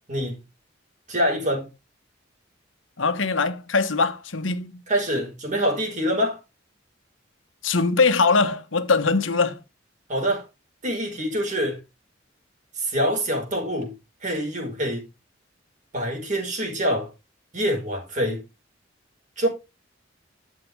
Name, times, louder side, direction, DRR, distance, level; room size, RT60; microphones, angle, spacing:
voice 1, 1.1-1.7 4.9-6.4 10.1-10.4 10.8-11.8 12.8-13.9 14.2-15.0 15.9-17.1 17.5-18.4 19.4-19.5, equal, 40° right, 4.9 m, -25 dB
voice 2, 3.0-4.8 7.6-9.6, left 4 dB, 80° left, 1.2 m, -22 dB
11.5 x 7.7 x 3.4 m
head